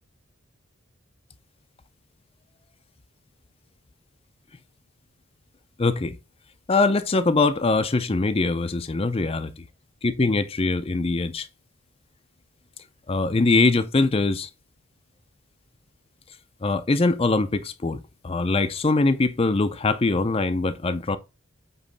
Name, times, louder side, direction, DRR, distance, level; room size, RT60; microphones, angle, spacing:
voice 1, 5.8-6.2 6.7-9.6 10.0-11.5 13.1-14.5 16.6-21.2, left 3 dB, 30° left, 0.5 m, -22 dB
8.2 x 3.1 x 5.2 m
head